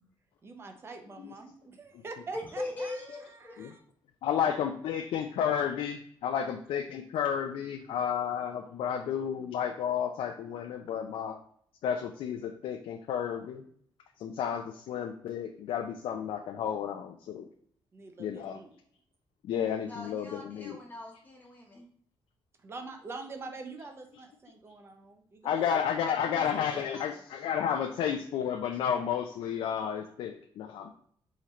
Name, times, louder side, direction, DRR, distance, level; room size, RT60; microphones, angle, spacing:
voice 1, 0.4-3.8 17.9-18.7 22.6-25.7 26.3-27.2, right 3 dB, 30° right, 5 dB, 0.6 m, -45 dB
voice 2, 2.3-3.6 19.9-21.9, left 2 dB, 20° left, -2 dB, 0.9 m, -40 dB
voice 3, 4.2-11.4 11.8-13.6 14.2-17.5 18.2-18.6 19.4-20.8 25.4-30.9, left 8 dB, 90° left, 4 dB, 0.4 m, -32 dB
4.3 x 3.8 x 3.0 m, 0.62 s
cardioid pair, 160°, 9 cm